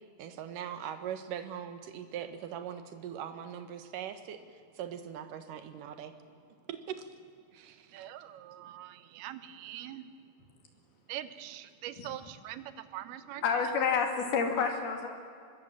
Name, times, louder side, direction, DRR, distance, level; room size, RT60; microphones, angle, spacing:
voice 1, 0.2-4.4 4.8-6.1 6.7-7.1 7.5-8.1, right 9 dB, 65° right, 9 dB, 2.7 m, -41 dB
voice 2, 7.9-10.1 11.1-13.7, right 12 dB, 90° right, 12 dB, 2.9 m, -43 dB
voice 3, 13.4-15.1, left 6 dB, 80° left, 3 dB, 4.3 m, -29 dB
25.0 x 21.0 x 7.5 m, 2.3 s
omnidirectional pair, 4.4 m